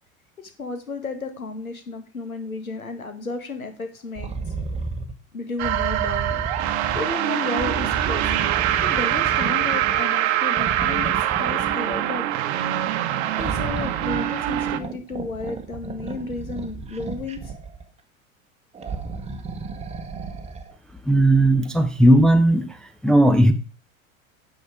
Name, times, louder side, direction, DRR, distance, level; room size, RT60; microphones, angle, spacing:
voice 1, 0.6-4.3 5.3-6.5 6.9-8.4 8.8-12.2 13.4-17.5, left 3 dB, 80° left, 7 dB, 1.9 m, -33 dB
sound 1, 4.2-5.1 5.6-7.1 7.6-10.2 10.6-12.1 13.3-17.8 18.7-20.7 21.7-21.8, right 4 dB, 15° right, 1.2 m, -32 dB
sound 2, 5.6-14.8, right 12 dB, 50° right, 0.9 m, -24 dB
voice 2, 21.1-22.7 23.0-23.5, right 1 dB, ahead, 6 dB, 0.5 m, -16 dB
9.5 x 6.3 x 5.0 m, 0.36 s
figure-of-eight pair, 85°, 42 cm